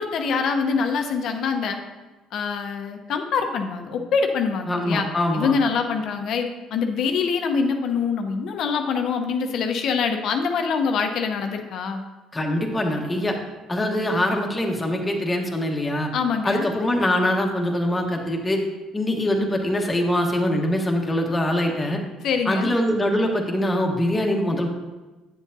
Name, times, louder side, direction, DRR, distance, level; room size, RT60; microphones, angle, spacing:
voice 1, 0.0-1.8 2.3-5.1 5.3-12.0 16.1-16.7 22.2-22.7, left 5 dB, 65° left, 5 dB, 0.8 m, -24 dB
voice 2, 4.7-5.5 12.3-13.4 13.7-16.1 16.4-18.6 18.9-22.0 22.4-24.7, left 1 dB, 15° left, 1 dB, 1.3 m, -23 dB
9.3 x 7.4 x 2.7 m, 1.2 s
supercardioid pair, 90°, 0 cm